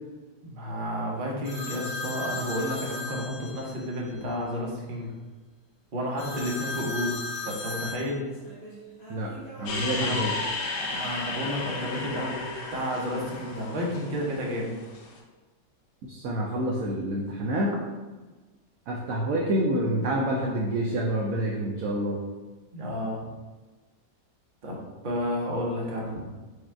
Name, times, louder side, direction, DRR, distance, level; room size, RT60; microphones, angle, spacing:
voice 1, 0.4-5.1 5.9-7.1 7.4-8.3 10.0-10.2 10.8-14.7 22.7-23.2 24.6-24.8 25.0-26.3, equal, 40° right, -3 dB, 0.8 m, -31 dB
sound 1, 1.4-3.9 6.2-10.4 10.8-11.9 12.7-13.7, left 2 dB, 70° left, 1.9 m, -38 dB
voice 2, 9.1-10.3 16.1-17.8 18.9-22.2, right 1 dB, 70° right, -2 dB, 0.8 m, -28 dB
sound 2, 9.7-15.1, left 3 dB, 55° left, 1.0 m, -33 dB
5.0 x 2.3 x 4.4 m, 1.3 s
omnidirectional pair, 1.9 m